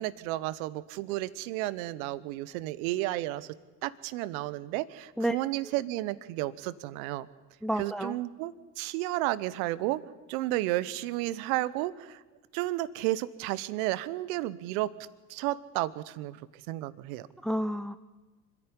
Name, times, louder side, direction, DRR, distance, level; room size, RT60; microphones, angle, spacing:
voice 1, 0.0-3.6 3.8-7.3 7.8-10.0 10.3-12.2 12.5-14.9 15.3-16.4 16.7-17.3, right 16 dB, 70° right, 18 dB, 1.0 m, -32 dB
voice 2, 7.6-8.2 17.4-18.0, right 1 dB, ahead, 10 dB, 0.6 m, -30 dB
25.5 x 11.0 x 9.8 m, 1.2 s
hypercardioid pair, 80°, 44 cm